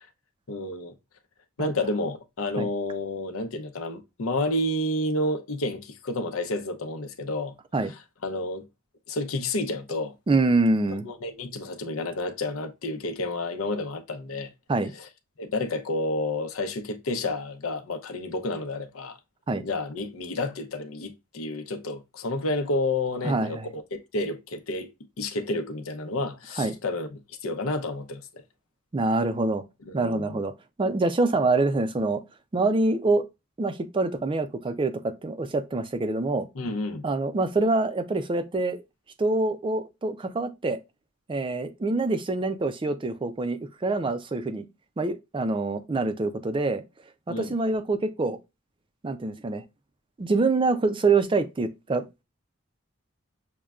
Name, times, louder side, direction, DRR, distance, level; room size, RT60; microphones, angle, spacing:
voice 1, 0.5-0.9 1.6-7.5 8.2-8.6 9.1-10.1 10.9-14.5 15.0-15.1 15.4-19.2 19.6-24.9 25.2-28.4 29.8-30.4 36.5-37.0 47.3-47.5, left 2 dB, 80° left, 0.7 m, -30 dB
voice 2, 10.3-11.1 14.7-14.9 19.5-19.6 23.2-23.7 26.6-26.7 28.9-29.6 29.9-30.5 30.8-32.2 32.5-33.2 33.6-36.5 37.0-38.8 39.2-40.8 41.3-44.7 45.0-46.8 47.3-48.4 49.0-49.6 50.2-52.2, right 3 dB, 25° right, 0.4 m, -25 dB
6.3 x 2.2 x 2.3 m
head